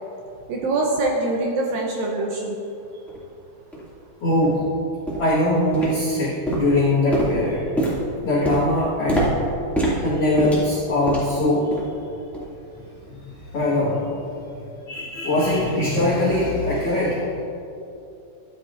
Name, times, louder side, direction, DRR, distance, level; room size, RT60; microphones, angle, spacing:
voice 1, 0.5-2.6, right 2 dB, 75° right, -1 dB, 2.1 m, -24 dB
sound 1, 3.1-3.2 3.7-3.8 4.4-4.5 5.1-5.4 5.7-6.2 6.5-11.4 11.7-12.0 12.3-12.5 13.1-13.2, right 1 dB, ahead, 0.5 m, -25 dB
voice 2, 4.2-4.6 5.2-7.6 8.2-9.2 9.9-11.7 13.1-14.1 14.5-17.2, left 1 dB, 50° left, -9 dB, 1.9 m, -22 dB
13.0 x 11.0 x 2.6 m, 2.7 s
omnidirectional pair, 4.8 m